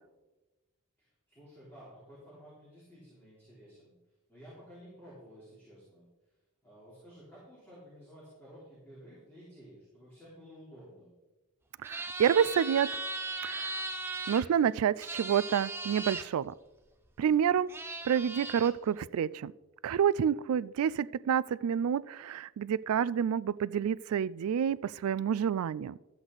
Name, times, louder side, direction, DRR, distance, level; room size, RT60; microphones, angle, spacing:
voice 1, 1.0-3.9 4.3-6.1 6.6-11.1, equal, 10° left, -9 dB, 3.5 m, -53 dB
sound 1, 11.8-14.4 15.0-16.2 17.3-17.4 17.7-18.7, right 3 dB, 10° right, 0.7 m, -38 dB
voice 2, 11.8-12.9 13.4-13.8 14.3-16.5 17.2-17.7 18.1-19.5 19.8-26.0, right 8 dB, 75° right, 19 dB, 0.3 m, -28 dB
13.0 x 7.7 x 4.0 m, 1.1 s
head